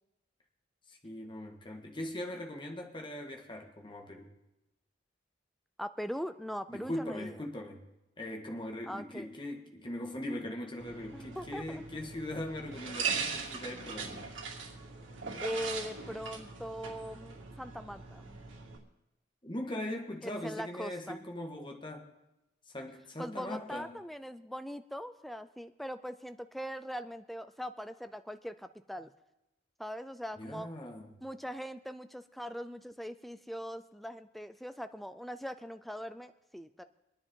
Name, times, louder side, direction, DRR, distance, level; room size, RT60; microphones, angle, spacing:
voice 1, 0.9-4.3 6.7-7.8 8.2-14.3 19.4-22.1 22.7-24.0 30.4-31.1, left 1 dB, 25° left, 2 dB, 1.7 m, -40 dB
voice 2, 5.8-7.3 8.9-9.3 11.1-12.1 15.4-18.4 20.2-21.2 23.2-29.1 29.8-30.7 31.2-36.8, equal, ahead, 10 dB, 0.5 m, -41 dB
sound 1, 10.8-18.8, right 5 dB, 80° right, 2.4 m, -40 dB
25.0 x 9.9 x 3.8 m, 0.93 s
head